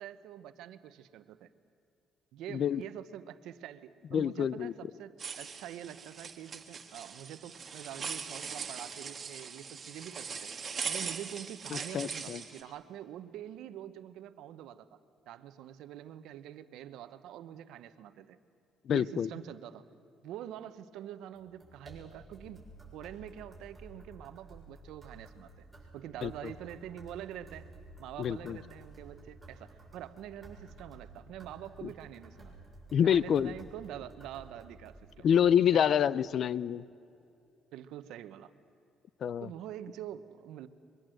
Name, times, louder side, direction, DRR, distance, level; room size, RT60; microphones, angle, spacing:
voice 1, 0.0-1.5 2.3-10.5 10.9-15.0 15.3-18.4 18.9-19.9 20.2-25.7 25.9-27.7 28.0-32.6 33.0-35.3 35.7-36.0 37.7-38.5 39.4-40.7, right 11 dB, 85° right, 12 dB, 1.0 m, -45 dB
voice 2, 4.1-4.7 11.7-12.4 18.9-19.3 26.2-26.3 28.2-28.6 31.8-31.9 32.9-33.5 35.2-36.8 39.2-39.5, left 8 dB, 55° left, 20 dB, 0.5 m, -27 dB
sound 1, 5.2-12.6, right 6 dB, 35° right, 1.7 m, -41 dB
sound 2, 21.3-35.3, right 1 dB, 5° right, 7.2 m, -53 dB
23.0 x 23.0 x 7.8 m, 2.6 s
cardioid pair, 125°, 0 cm